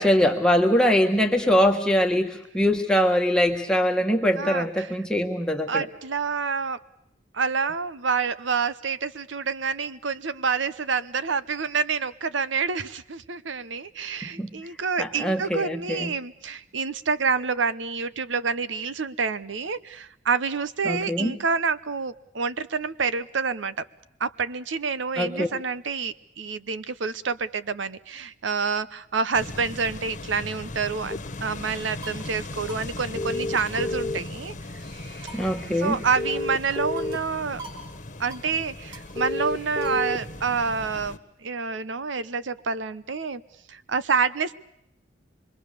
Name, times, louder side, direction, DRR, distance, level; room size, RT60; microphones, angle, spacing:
voice 1, 0.0-5.9 14.4-14.5 15.0-16.1 20.8-21.3 25.2-25.5 35.3-36.0, equal, 5° left, 3 dB, 1.4 m, -22 dB
voice 2, 4.4-4.9 5.7-6.8 7.3-23.9 24.2-34.8 35.7-37.6 38.2-43.4 43.7-44.5, right 5 dB, 80° right, 15 dB, 0.9 m, -28 dB
sound 1, 29.3-41.2, left 2 dB, 40° left, 1.4 m, -39 dB
sound 2, 31.1-31.2 33.2-34.4 36.2-37.2 39.2-40.2, left 2 dB, 20° left, 0.8 m, -29 dB
sound 3, 32.0-32.3 32.7-32.8 33.1-33.2 33.6-34.5 34.8-36.5 37.0-37.3 37.6-37.9 38.1-38.5 38.9-40.1, right 2 dB, 30° right, 5.6 m, -44 dB
26.0 x 22.5 x 6.8 m, 0.78 s
head